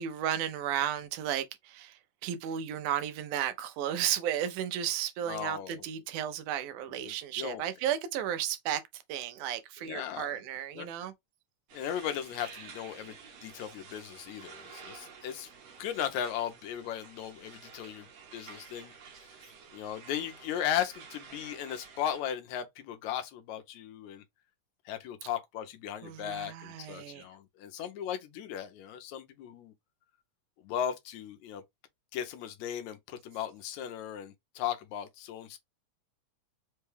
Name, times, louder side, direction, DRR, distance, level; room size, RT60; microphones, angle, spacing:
voice 1, 0.0-8.8 9.1-11.1 26.0-27.2, right 10 dB, 85° right, 2.1 m, -34 dB
voice 2, 5.3-5.8 6.9-7.6 9.8-10.4 10.8-10.9 11.7-13.1 13.4-15.5 15.8-19.4 19.7-24.2 24.9-29.7 30.6-31.6 32.1-35.6, left 10 dB, 75° left, 1.9 m, -37 dB
sound 1, 11.7-22.2, right 6 dB, 65° right, 2.0 m, -51 dB
5.4 x 2.2 x 3.3 m
omnidirectional pair, 3.5 m